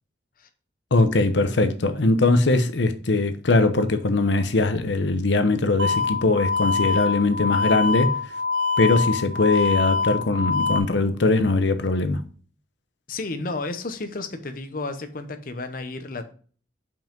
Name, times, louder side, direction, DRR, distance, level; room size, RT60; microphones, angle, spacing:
voice 1, 0.9-8.1 8.8-12.2, left 2 dB, 80° left, 0.8 m, -21 dB
sound 1, 5.8-10.8, left 4 dB, 65° right, 0.9 m, -24 dB
voice 2, 13.1-16.3, left 3 dB, 50° left, 0.8 m, -32 dB
5.6 x 5.2 x 5.2 m
head